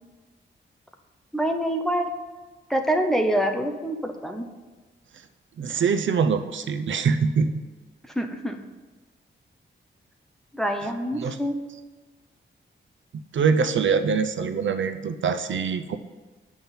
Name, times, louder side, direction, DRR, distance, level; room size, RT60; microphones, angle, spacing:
voice 1, 1.3-2.1 2.7-4.5 8.2-8.6 10.5-11.6, right 1 dB, ahead, 3 dB, 0.9 m, -25 dB
voice 2, 5.6-7.6 11.1-11.4 13.1-16.0, right 5 dB, 75° right, 8 dB, 0.7 m, -24 dB
9.4 x 6.1 x 7.1 m, 1.3 s
wide cardioid pair, 165°, 20 cm